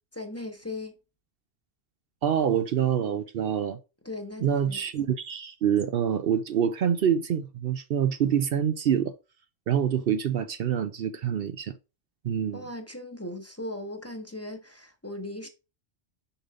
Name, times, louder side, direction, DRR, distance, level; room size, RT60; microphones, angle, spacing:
voice 1, 0.1-0.9 4.0-4.8 12.5-15.5, left 1 dB, 15° left, 1.0 m, -38 dB
voice 2, 2.2-3.8 4.4-9.1 9.7-11.7 12.2-12.6, right 8 dB, 65° right, 0.8 m, -26 dB
6.9 x 5.4 x 3.7 m
omnidirectional pair, 1.1 m